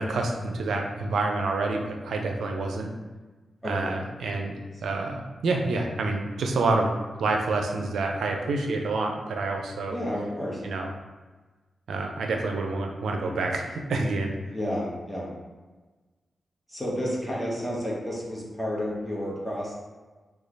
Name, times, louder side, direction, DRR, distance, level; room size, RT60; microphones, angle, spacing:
voice 1, 0.0-2.9 3.6-4.5 4.8-6.9 7.2-10.0 10.6-10.9 11.9-14.4, right 3 dB, 85° right, 2 dB, 0.4 m, -28 dB
voice 2, 3.6-4.0 9.9-10.6 14.5-15.3 16.7-19.7, equal, 10° left, -5 dB, 1.2 m, -31 dB
3.0 x 2.3 x 3.9 m, 1.3 s
supercardioid pair, 45°, 0 cm